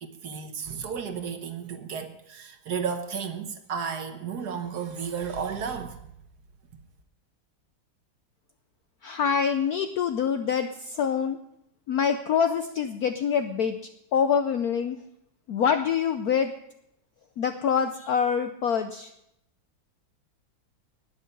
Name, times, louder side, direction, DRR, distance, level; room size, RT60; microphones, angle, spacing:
voice 1, 0.0-6.0, right 6 dB, 60° right, 7 dB, 1.4 m, -33 dB
voice 2, 9.0-11.4 11.9-13.8 14.1-15.0 15.5-16.5 17.4-19.1, left 7 dB, 70° left, 8 dB, 0.9 m, -25 dB
19.0 x 7.0 x 5.3 m, 0.79 s
omnidirectional pair, 2.2 m